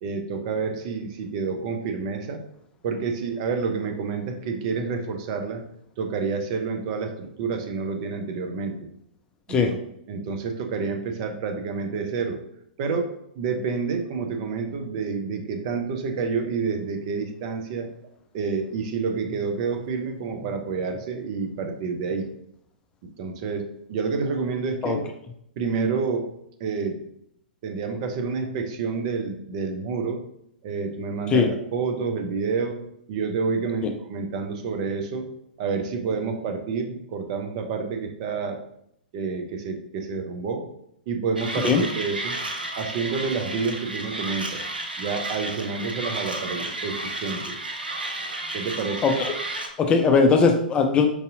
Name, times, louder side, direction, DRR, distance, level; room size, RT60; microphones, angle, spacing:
voice 1, 0.0-2.4 2.8-5.6 6.0-8.8 9.5-9.8 10.1-12.4 12.8-17.9 18.3-22.3 23.2-25.1 25.6-27.1 27.6-30.2 30.6-35.3 35.6-38.6 39.1-40.7 41.1-42.4 42.8-44.6 45.0-47.6 48.5-49.1, right 5 dB, 40° right, 5 dB, 0.5 m, -29 dB
Mechanisms, 41.4-49.7, right 2 dB, 85° right, 0.6 m, -32 dB
voice 2, 49.0-49.3 49.8-51.1, left 5 dB, 20° left, 5 dB, 0.4 m, -19 dB
4.7 x 2.7 x 2.5 m, 0.74 s
figure-of-eight pair, 110°, 5 cm